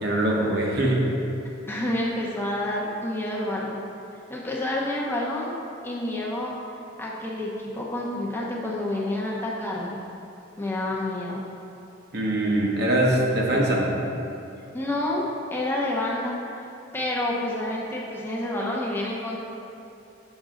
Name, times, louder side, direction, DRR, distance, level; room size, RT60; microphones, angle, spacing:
voice 1, 0.0-1.0 12.1-13.9, right 1 dB, 55° right, -2 dB, 1.0 m, -22 dB
voice 2, 1.7-3.8 4.3-5.5 5.8-6.5 7.0-10.0 10.6-11.4 14.7-15.2 15.5-16.3 16.9-19.4, left 1 dB, 10° left, -4 dB, 0.7 m, -28 dB
6.3 x 5.9 x 3.8 m, 2.7 s
head